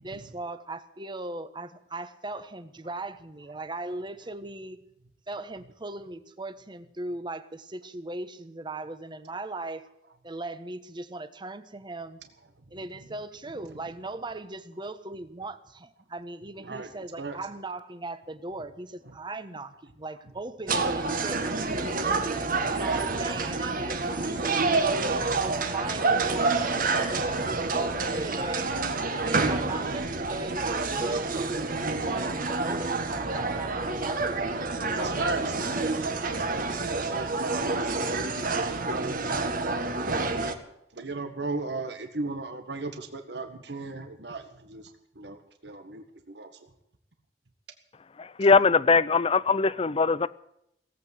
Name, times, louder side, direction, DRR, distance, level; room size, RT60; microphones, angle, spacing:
voice 1, 0.0-4.8 5.3-9.8 10.2-12.2 12.7-22.2 22.7-28.7 29.2-36.2, right 2 dB, 25° right, 1.2 m, -39 dB
sound 1, 20.7-40.5, right 3 dB, 55° right, 1.8 m, -28 dB
voice 2, 21.5-22.0 23.1-23.4 23.9-24.1 29.1-29.3 34.9-35.6 36.3-37.4 37.7-38.1 39.0-39.1 40.9-44.9 45.2-45.4 45.6-46.7, right 3 dB, 75° right, 1.7 m, -36 dB
voice 3, 48.2-50.3, left 4 dB, 35° left, 0.6 m, -21 dB
18.0 x 8.5 x 9.2 m
head